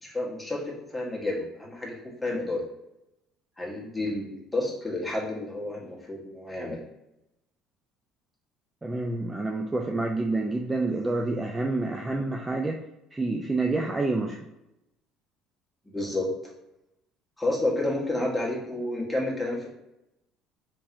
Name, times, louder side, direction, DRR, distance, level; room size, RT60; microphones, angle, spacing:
voice 1, 0.0-2.6 3.6-6.8 15.9-16.3 17.4-19.7, left 2 dB, 5° left, -4 dB, 1.2 m, -30 dB
voice 2, 8.8-12.8 13.1-14.5, right 2 dB, 20° right, 1 dB, 0.3 m, -28 dB
3.0 x 2.9 x 2.5 m, 0.88 s
hypercardioid pair, 65°, 0 cm